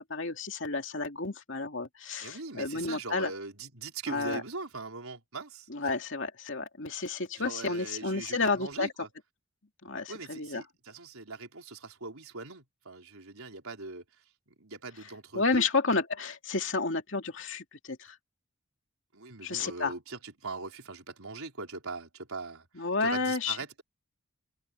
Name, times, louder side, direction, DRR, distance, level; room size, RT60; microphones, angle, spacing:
voice 1, 0.1-3.3 4.1-4.4 5.7-8.9 9.8-10.6 15.3-18.2 19.4-19.9 22.8-23.8, left 3 dB, 60° left, 2.7 m, -31 dB
voice 2, 2.2-5.7 6.9-7.0 7.4-9.1 10.1-14.0 14.5-15.7 19.1-23.8, right 3 dB, 80° right, 4.2 m, -41 dB
head